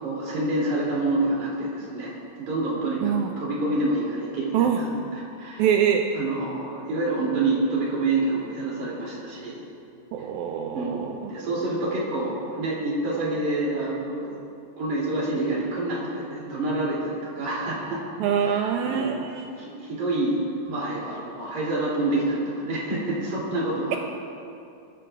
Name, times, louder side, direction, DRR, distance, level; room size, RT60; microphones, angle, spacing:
voice 1, 0.0-5.6 6.1-9.6 10.7-11.0 11.3-14.4 14.8-18.0 18.5-24.0, right 2 dB, 60° right, -6 dB, 4.2 m, -27 dB
voice 2, 5.6-6.0 10.1-11.3 18.2-19.5, right 8 dB, 80° right, 3 dB, 1.8 m, -24 dB
22.5 x 13.5 x 2.4 m, 2.6 s
omnidirectional pair, 3.9 m